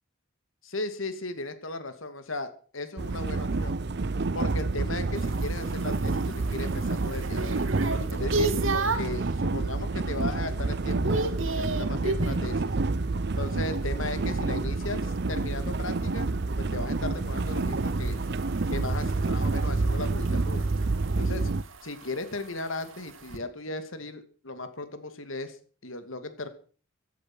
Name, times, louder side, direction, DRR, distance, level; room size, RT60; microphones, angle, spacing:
voice 1, 0.6-3.8 4.3-7.6 8.1-12.8 13.4-16.3 16.6-18.2 18.7-20.6 21.2-21.5 21.8-25.6 25.8-26.5, left 2 dB, 80° left, 10 dB, 2.6 m, -36 dB
sound 1, 3.0-21.6, right 3 dB, 55° right, 0.7 m, -28 dB
sound 2, 5.1-9.2 9.7-10.1 10.4-12.5 15.0-23.4, right 2 dB, 80° right, 2.3 m, -35 dB
16.0 x 12.0 x 6.2 m, 0.42 s
head